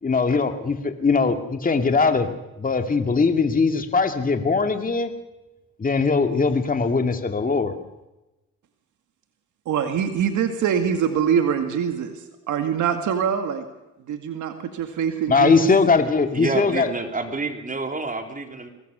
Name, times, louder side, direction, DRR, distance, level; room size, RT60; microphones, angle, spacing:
voice 1, 0.0-5.1 5.8-7.7 15.3-16.9, left 4 dB, 30° left, 6 dB, 2.4 m, -21 dB
voice 2, 9.7-12.2 12.5-13.6 14.1-15.7, right 8 dB, 75° right, 7 dB, 2.2 m, -24 dB
voice 3, 16.3-18.7, right 3 dB, 25° right, 5 dB, 3.7 m, -28 dB
24.0 x 19.0 x 6.9 m, 1.0 s
cardioid pair, 90°, 30 cm